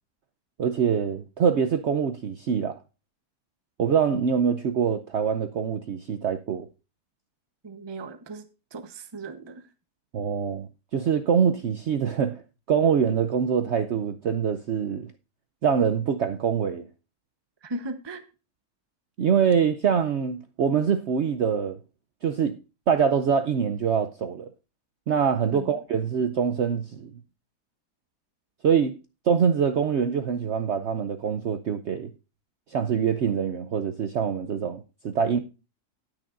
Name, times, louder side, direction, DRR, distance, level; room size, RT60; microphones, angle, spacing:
voice 1, 0.6-2.8 3.8-6.7 10.1-15.1 15.6-16.9 19.2-21.8 22.2-22.6 22.9-24.5 25.1-27.1 28.6-29.0 29.3-32.1 32.7-35.4, right 7 dB, 60° right, 0.8 m, -24 dB
voice 2, 7.6-9.6 17.6-18.2 25.5-25.8, right 2 dB, 25° right, 0.7 m, -37 dB
18.5 x 6.4 x 2.5 m
omnidirectional pair, 1.7 m